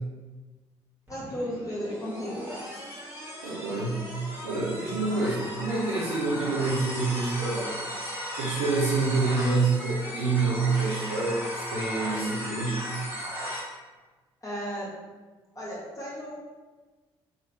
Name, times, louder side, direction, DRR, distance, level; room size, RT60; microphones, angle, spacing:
voice 1, 1.1-2.3 14.4-14.9 15.5-16.4, equal, 25° left, -6 dB, 1.4 m, -34 dB
sound 1, 1.1-13.6, equal, 15° right, 1.4 m, -36 dB
voice 2, 3.4-4.1 4.4-7.7 8.4-12.8, right 3 dB, 80° right, -9 dB, 0.6 m, -27 dB
3.0 x 2.1 x 3.2 m, 1.3 s
figure-of-eight pair, 40°, 15 cm